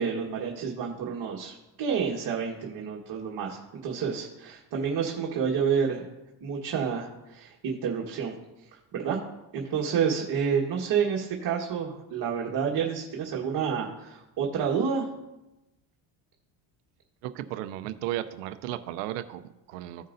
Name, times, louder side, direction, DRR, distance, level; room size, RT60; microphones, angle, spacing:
voice 1, 0.0-6.1 6.4-8.3 8.7-9.2 9.5-15.1, right 6 dB, 50° right, -2 dB, 1.5 m, -29 dB
voice 2, 17.2-20.1, right 13 dB, 90° right, 11 dB, 0.7 m, -35 dB
16.0 x 5.4 x 2.6 m, 0.97 s
supercardioid pair, 90°, 47 cm